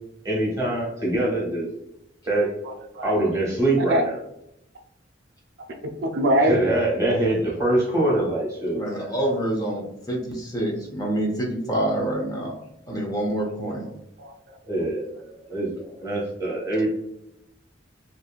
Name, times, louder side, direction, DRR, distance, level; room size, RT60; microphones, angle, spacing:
voice 1, 0.2-1.7 2.2-2.5 3.0-4.2 6.3-9.2 14.7-15.7 16.0-16.9, right 1 dB, 20° right, -3 dB, 1.1 m, -24 dB
voice 2, 2.6-3.1 3.8-4.0 6.0-6.6 13.8-13.9 14.2-14.6 15.1-15.2 15.9-16.1, equal, 65° right, 3 dB, 0.4 m, -24 dB
voice 3, 8.8-12.5 12.9-13.9, right 1 dB, 20° left, -1 dB, 0.5 m, -27 dB
2.9 x 2.6 x 2.3 m, 0.80 s
head